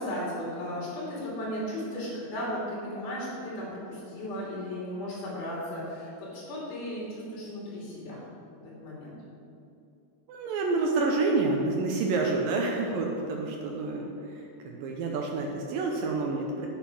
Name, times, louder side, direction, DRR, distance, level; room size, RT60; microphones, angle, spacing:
voice 1, 0.0-8.2 8.6-9.1, equal, 50° left, -6 dB, 3.9 m, -35 dB
voice 2, 10.3-16.7, right 3 dB, 80° right, 1 dB, 2.1 m, -28 dB
8.3 x 7.4 x 6.0 m, 2.7 s
omnidirectional pair, 4.9 m